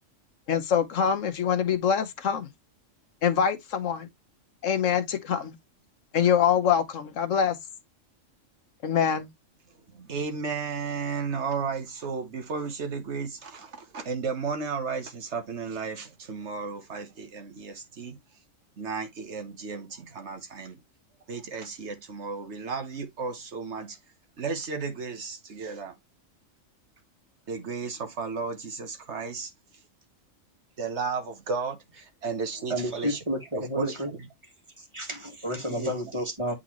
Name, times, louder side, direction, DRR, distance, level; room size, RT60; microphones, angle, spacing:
voice 1, 0.5-2.5 3.2-4.1 4.6-5.5 6.1-7.6 8.8-9.3, left 8 dB, 75° left, 1.2 m, -24 dB
voice 2, 9.9-18.2 18.8-20.8 21.3-24.0 24.4-25.9 27.5-29.5 30.8-33.2 33.5-33.9 35.7-35.9, right 5 dB, 60° right, 1.3 m, -34 dB
voice 3, 32.7-34.1 34.9-36.5, equal, 25° right, 1.7 m, -31 dB
8.6 x 3.9 x 3.0 m
omnidirectional pair, 1.3 m